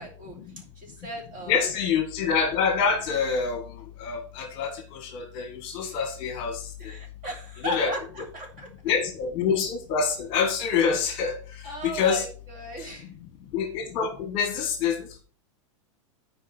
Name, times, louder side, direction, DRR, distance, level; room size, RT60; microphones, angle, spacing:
voice 1, 0.0-1.6 5.8-6.0 6.8-8.7 11.6-13.1, right 1 dB, 35° right, 0 dB, 2.8 m, -37 dB
voice 2, 1.5-3.6 4.0-6.9 7.6-7.9 8.8-11.3 11.8-12.2 13.5-15.2, left 6 dB, 35° left, 5 dB, 1.3 m, -26 dB
11.5 x 4.7 x 4.3 m, 0.41 s
supercardioid pair, 175°, 16 cm